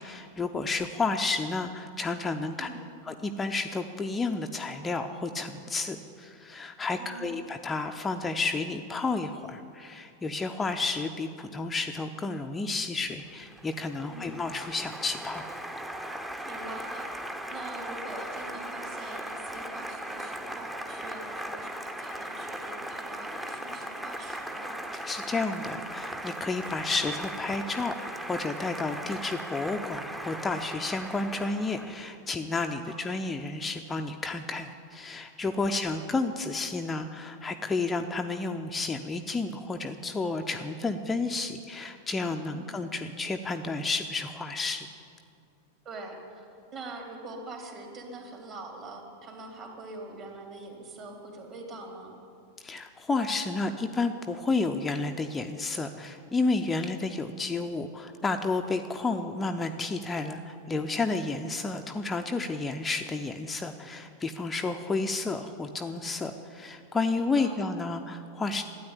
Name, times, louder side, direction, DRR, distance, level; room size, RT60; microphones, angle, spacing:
voice 1, 0.0-2.7 3.1-15.4 25.0-27.9 28.2-44.9 52.6-68.6, left 3 dB, 15° left, 5 dB, 0.6 m, -31 dB
voice 2, 7.0-7.4 14.0-14.4 16.4-24.7 32.8-33.1 35.7-36.0 42.5-42.8 45.8-52.1 67.1-67.7, right 2 dB, 35° right, 1 dB, 3.2 m, -44 dB
Applause, 13.2-32.1, right 1 dB, 5° right, 1.0 m, -38 dB
13.0 x 9.4 x 9.9 m, 2.5 s
figure-of-eight pair, 90°, 0 cm